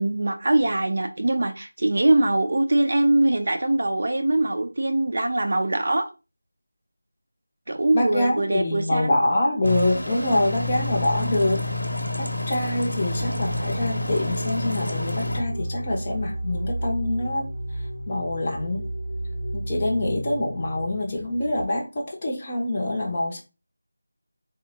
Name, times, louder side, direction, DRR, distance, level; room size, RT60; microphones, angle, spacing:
voice 1, 0.0-6.0 7.7-9.1 11.2-11.3, right 2 dB, 55° right, 0.5 m, -22 dB
voice 2, 7.9-11.7 12.2-17.5 18.1-18.9 19.5-23.4, left 1 dB, 25° left, 0.6 m, -25 dB
sound 1, 9.6-15.4, left 2 dB, 75° left, 0.8 m, -29 dB
sound 2, 13.0-21.7, right 1 dB, 10° right, 0.9 m, -32 dB
3.6 x 2.1 x 2.8 m
figure-of-eight pair, 170°, 0 cm